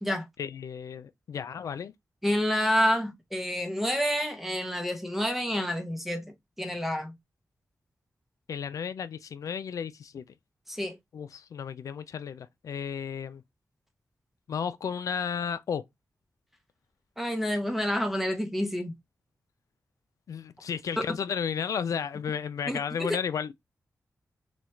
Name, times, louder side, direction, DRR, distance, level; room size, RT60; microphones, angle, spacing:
voice 1, 0.4-1.9 8.5-10.3 11.1-13.4 14.5-15.8 20.3-23.5, left 7 dB, 85° left, 0.4 m, -33 dB
voice 2, 2.2-7.2 10.7-11.0 17.2-18.9 22.7-23.2, equal, 5° right, 0.8 m, -28 dB
3.1 x 2.3 x 4.3 m
wide cardioid pair, 95°, 6 cm